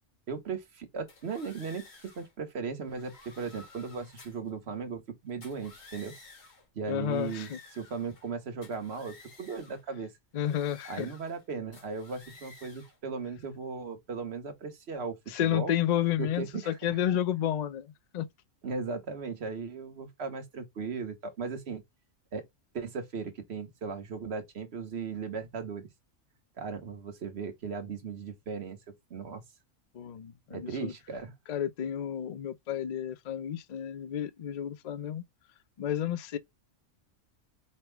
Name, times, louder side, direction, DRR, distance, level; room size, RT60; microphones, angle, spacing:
voice 1, 0.3-1.9 2.1-6.1 6.7-7.5 7.8-10.1 10.8-15.7 16.2-17.2 18.6-21.8 22.3-22.5 22.7-25.9 26.6-28.8 29.1-29.4 30.5-31.3, right 5 dB, 55° right, 1.4 m, -37 dB
sound 1, 1.1-2.3 2.8-4.5 5.3-6.7 7.0-8.3 8.6-9.8 10.4-11.4 11.7-13.0, left 3 dB, 75° left, 2.1 m, -54 dB
voice 2, 6.9-7.6 10.3-11.1 15.3-18.3 29.9-30.9 31.5-35.2 35.8-36.4, left 10 dB, 60° left, 0.4 m, -31 dB
5.4 x 2.2 x 3.2 m
omnidirectional pair, 1.3 m